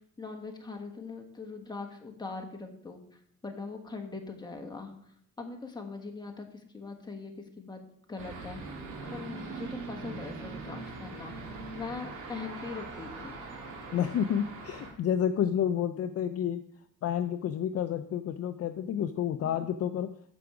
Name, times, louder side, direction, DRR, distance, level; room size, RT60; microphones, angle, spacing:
voice 1, 0.2-4.9 5.4-6.5 6.7-7.8 8.1-8.6 9.1-13.4 19.4-19.7, left 4 dB, 15° left, 3 dB, 1.4 m, -41 dB
sound 1, 8.2-14.9, right 3 dB, 80° right, 2.2 m, -41 dB
voice 2, 13.9-16.6 17.0-20.2, left 9 dB, 50° left, 10 dB, 0.5 m, -30 dB
7.4 x 7.0 x 4.9 m, 0.68 s
cardioid pair, 115°, 31 cm